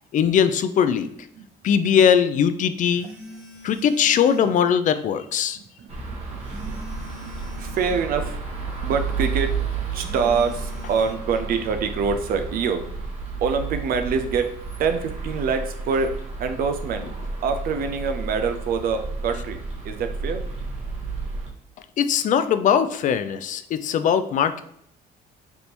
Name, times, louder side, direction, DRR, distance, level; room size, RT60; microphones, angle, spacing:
voice 1, 0.1-1.1 1.6-3.1 3.6-5.6 22.0-24.6, left 8 dB, 50° left, 11 dB, 0.4 m, -20 dB
sound 1, 1.0-1.1 2.9-4.6 6.4-8.1 9.9-11.1, left 1 dB, 10° right, 1.5 m, -43 dB
voice 2, 5.6-8.4 8.8-9.6 9.9-12.9 13.4-17.1 17.4-20.4, right 5 dB, 60° right, 7 dB, 0.5 m, -26 dB
sound 2, 5.9-21.5, right 4 dB, 40° right, 1.2 m, -32 dB
3.4 x 2.8 x 4.2 m, 0.68 s
cardioid pair, 110°, 17 cm